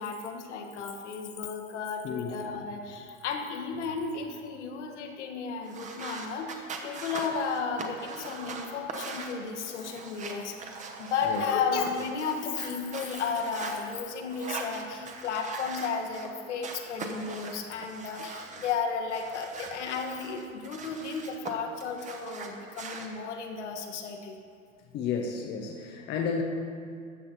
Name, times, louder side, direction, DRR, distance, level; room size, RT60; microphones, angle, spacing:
voice 1, 0.0-24.4, left 5 dB, 55° left, 3 dB, 1.5 m, -33 dB
voice 2, 2.0-2.4 11.3-11.5 24.9-26.4, left 6 dB, 25° left, 3 dB, 0.8 m, -32 dB
sound 1, 5.6-13.8 14.3-16.3 16.6-18.7 19.1-21.5 21.8-23.1, right 4 dB, 20° right, 1.1 m, -41 dB
14.0 x 8.6 x 4.2 m, 2.3 s
figure-of-eight pair, 95°, 41 cm